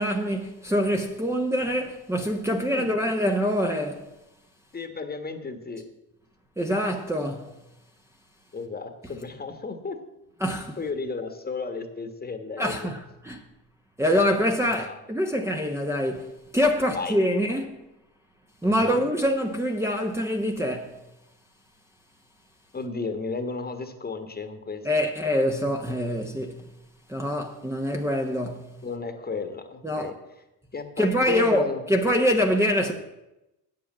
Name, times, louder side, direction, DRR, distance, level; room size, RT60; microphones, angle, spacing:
voice 1, 0.0-4.1 6.6-7.5 10.4-10.8 12.6-13.4 14.0-17.8 18.6-21.0 24.8-26.6 27.1-28.7 29.8-30.1 31.0-32.9, equal, 5° right, 1.0 m, -25 dB
voice 2, 4.7-5.8 8.5-10.0 10.8-12.9 14.7-15.0 16.9-17.1 18.6-19.1 22.7-24.8 28.8-30.1 30.7-32.0, left 4 dB, 25° left, 1.5 m, -33 dB
8.6 x 7.7 x 7.4 m
supercardioid pair, 90°, 38 cm